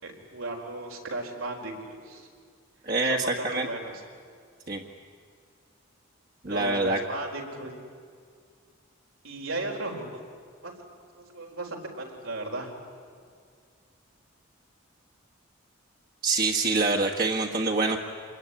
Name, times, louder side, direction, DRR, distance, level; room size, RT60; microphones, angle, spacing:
voice 1, 0.0-2.3 3.0-4.0 6.5-7.7 9.2-10.2 10.6-10.7 11.1-12.7, right 2 dB, 80° right, 1 dB, 4.6 m, -35 dB
voice 2, 2.8-3.7 4.7-4.8 6.4-7.0 16.2-18.0, right 3 dB, 45° right, 0 dB, 1.7 m, -25 dB
27.0 x 21.5 x 10.0 m, 2.1 s
head